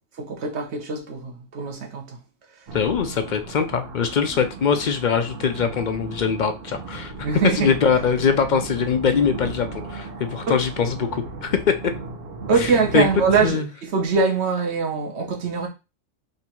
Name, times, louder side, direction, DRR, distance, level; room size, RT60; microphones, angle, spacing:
voice 1, 0.2-2.2 7.2-7.7 10.5-10.6 12.5-15.7, right 5 dB, 60° right, 1.3 m, -23 dB
voice 2, 2.7-7.1 7.5-11.6 12.9-13.0 13.4-13.6, left 6 dB, 55° left, 0.5 m, -22 dB
sound 1, 2.7-13.5, right 3 dB, 90° right, 1.5 m, -36 dB
4.0 x 2.7 x 4.3 m
omnidirectional pair, 1.3 m